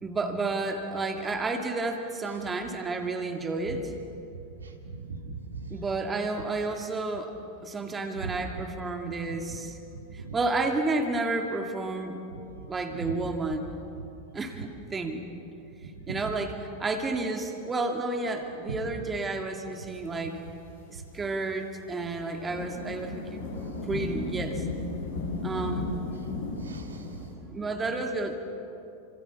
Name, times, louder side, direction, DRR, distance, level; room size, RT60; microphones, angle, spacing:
voice 1, 0.0-3.8 5.7-7.3 7.6-9.8 10.1-12.2 12.7-13.8 14.3-15.2 16.1-20.4 20.9-23.5 23.8-24.6 25.4-25.9 27.5-28.3, right 3 dB, 15° right, 4 dB, 2.4 m, -31 dB
voice 2, 4.6-5.8 8.2-8.4 9.3-9.6 9.9-10.3 12.3-12.6 12.9-13.1 14.0-14.1 15.8-16.2 18.7-18.9 26.5-27.3, right 5 dB, 70° right, 3 dB, 2.8 m, -39 dB
sound 1, 22.0-22.1 22.3-27.3, left 2 dB, 60° left, 7.1 m, -34 dB
29.0 x 26.5 x 7.2 m, 2.8 s
figure-of-eight pair, 90°, 0 cm